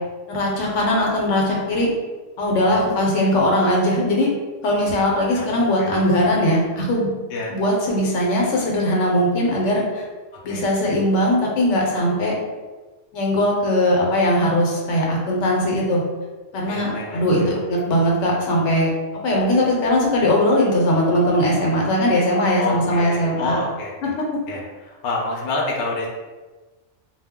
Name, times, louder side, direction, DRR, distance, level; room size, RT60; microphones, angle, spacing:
voice 1, 0.3-1.9 2.4-4.3 4.6-7.1 7.5-10.0 10.4-12.3 13.1-16.0 16.5-18.9 19.2-23.6, left 1 dB, 80° left, -2 dB, 1.0 m, -20 dB
voice 2, 16.7-17.5 22.6-23.9 24.5-26.1, left 2 dB, 65° left, -1 dB, 0.7 m, -28 dB
2.3 x 2.0 x 3.5 m, 1.3 s
omnidirectional pair, 1.2 m